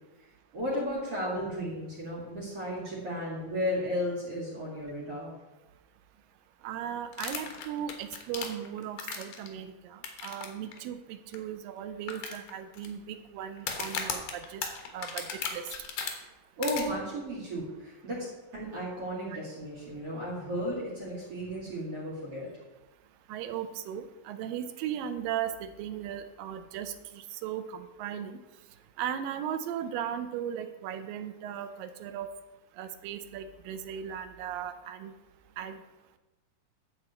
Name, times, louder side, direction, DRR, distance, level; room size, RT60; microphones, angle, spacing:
voice 1, 0.5-5.3 16.6-18.3 18.5-22.5, equal, 45° right, -6 dB, 2.9 m, -34 dB
voice 2, 6.6-14.7 14.9-15.6 23.3-28.4 29.0-32.3 32.8-35.1 35.6-35.8, right 9 dB, 85° right, 9 dB, 2.4 m, -37 dB
sound 1, 7.1-9.5 10.0-10.5 10.7-10.8 11.3-11.4 12.1-12.9 13.6-16.1 16.6-16.8, left 7 dB, 80° left, 3.1 m, -35 dB
11.5 x 4.2 x 7.9 m, 1.1 s
omnidirectional pair, 4.0 m